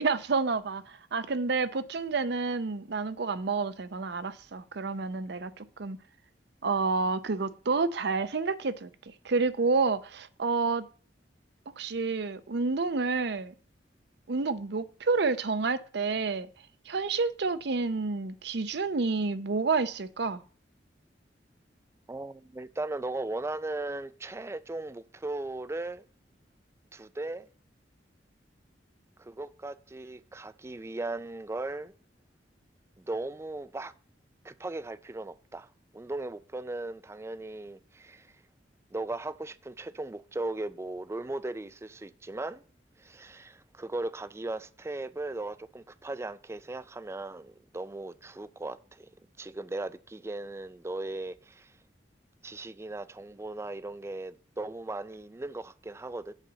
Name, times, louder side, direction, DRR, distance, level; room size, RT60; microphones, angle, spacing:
voice 1, 0.0-6.0 6.6-8.9 9.2-10.9 11.8-13.5 14.3-16.5 16.9-20.4, right 4 dB, 65° right, 0.6 m, -29 dB
voice 2, 22.1-26.0 26.9-27.5 29.2-31.9 33.0-33.9 34.4-38.3 38.9-42.6 43.0-49.1 49.4-51.7 52.4-56.3, right 2 dB, 15° right, 0.4 m, -37 dB
8.1 x 4.1 x 6.7 m
head